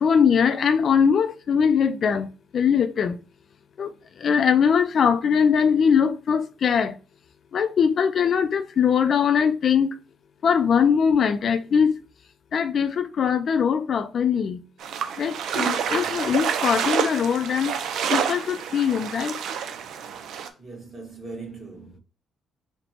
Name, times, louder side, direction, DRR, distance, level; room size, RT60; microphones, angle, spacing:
voice 1, 0.0-2.3 2.5-3.2 3.8-3.9 4.2-6.9 7.5-9.9 10.4-11.9 12.5-14.6 15.2-17.7 18.1-19.3, left 7 dB, 55° left, 0.4 m, -21 dB
sound 1, 14.8-20.5, right 7 dB, 75° right, 0.5 m, -28 dB
voice 2, 15.8-16.3 20.6-22.0, right 3 dB, 30° right, 1.9 m, -40 dB
4.1 x 2.2 x 4.3 m
cardioid pair, 90°, 0 cm